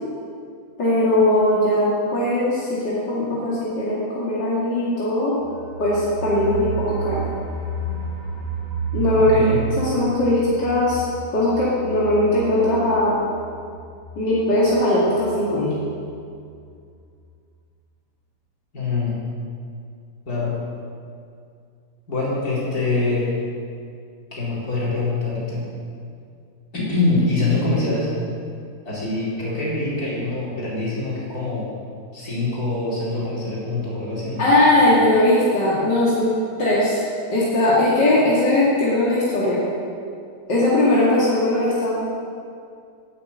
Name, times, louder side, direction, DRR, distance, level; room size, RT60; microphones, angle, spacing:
voice 1, 0.8-5.4 5.8-7.3 8.9-13.2 14.2-15.7 34.4-36.3 36.6-37.0 37.3-39.6 40.5-41.9, left 1 dB, 80° left, -8 dB, 3.2 m, -19 dB
sound 1, 5.4-16.1 16.4-16.5 16.8-16.9, right 5 dB, 65° right, 4.9 m, -31 dB
voice 2, 9.2-9.6 18.7-19.1 20.3-20.6 22.1-23.3 24.3-25.7 26.7-28.1 28.8-31.7 32.1-34.5, left 3 dB, 60° left, -7 dB, 4.7 m, -24 dB
11.5 x 10.5 x 8.6 m, 2.4 s
omnidirectional pair, 1.8 m